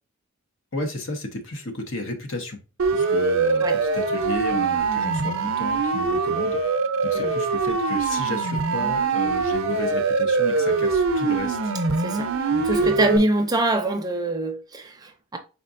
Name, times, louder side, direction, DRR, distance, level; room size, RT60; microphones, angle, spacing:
voice 1, 0.7-2.6 2.9-13.2, left 2 dB, 60° left, 1.1 m, -34 dB
Siren, 2.8-13.2, right 4 dB, 65° right, 0.6 m, -23 dB
voice 2, 12.0-12.3 12.6-15.4, right 1 dB, 20° right, 0.6 m, -24 dB
5.0 x 4.2 x 2.5 m
head